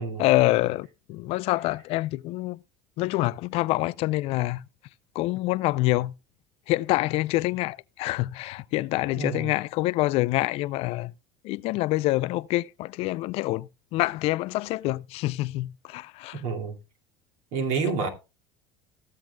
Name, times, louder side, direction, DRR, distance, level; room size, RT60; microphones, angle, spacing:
voice 1, 0.2-2.6 3.0-4.6 5.2-6.1 6.7-11.1 11.4-16.4, left 18 dB, 60° left, 0.4 m, -26 dB
voice 2, 9.1-9.5 16.4-16.8 17.5-18.1, right 4 dB, 65° right, 2.3 m, -28 dB
15.0 x 7.6 x 2.2 m
hypercardioid pair, 85°, 12 cm